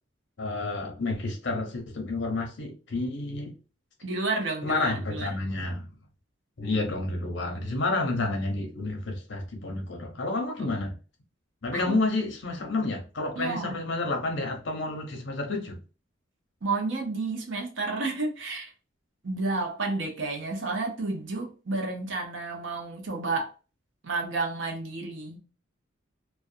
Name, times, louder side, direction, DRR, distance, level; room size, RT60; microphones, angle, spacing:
voice 1, 0.4-3.5 4.6-5.9 6.6-10.9 11.6-15.8, left 2 dB, 65° left, 0.8 m, -30 dB
voice 2, 4.0-5.4 11.7-12.0 13.4-13.8 16.6-18.7 19.2-23.5 24.0-25.4, right 3 dB, 70° right, 0.7 m, -31 dB
2.4 x 2.2 x 2.6 m
head